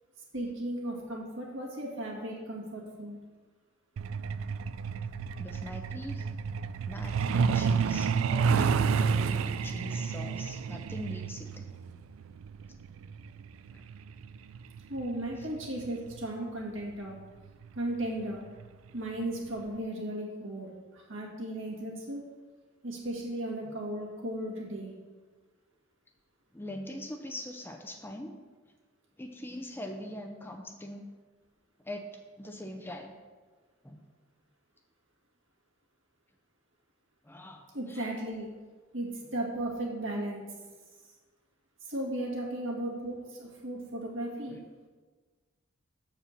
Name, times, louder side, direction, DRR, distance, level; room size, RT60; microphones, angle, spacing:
voice 1, 0.3-3.2 14.9-17.2 17.7-18.4 18.9-22.2 22.8-24.9 37.7-38.5 38.9-40.4 41.9-44.6, right 1 dB, 70° right, -1 dB, 2.0 m, -36 dB
Truck, 4.0-16.3 17.5-17.7 18.0-18.2 18.6-18.9 19.2-19.3 19.8-19.9, right 6 dB, 90° right, 0.4 m, -30 dB
voice 2, 5.4-6.3 6.9-11.7 13.7-13.8 26.5-28.3 29.2-31.1 31.8-32.1 32.4-33.1 33.8-34.0 37.2-38.1 44.5-44.6, left 1 dB, 10° left, 4 dB, 0.5 m, -42 dB
7.4 x 4.8 x 6.6 m, 1.4 s
head